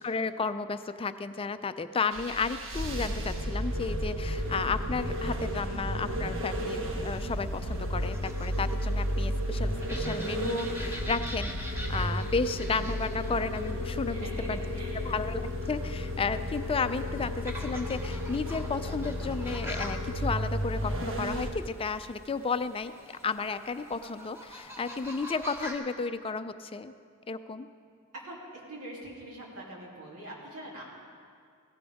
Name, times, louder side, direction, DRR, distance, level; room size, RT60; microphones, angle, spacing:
voice 1, 0.0-14.2 14.5-14.6 15.0-22.9 23.2-26.9 27.3-27.7, left 4 dB, 25° left, 11 dB, 0.4 m, -33 dB
sound 1, 2.1-21.5, equal, 60° right, 1.2 m, -33 dB
sound 2, 6.9-25.7, equal, 10° right, 1.2 m, -46 dB
voice 2, 14.0-15.2 24.5-24.7 28.1-28.4 28.7-30.8, right 1 dB, 85° right, -4 dB, 2.9 m, -44 dB
16.5 x 15.5 x 3.5 m, 2.2 s
head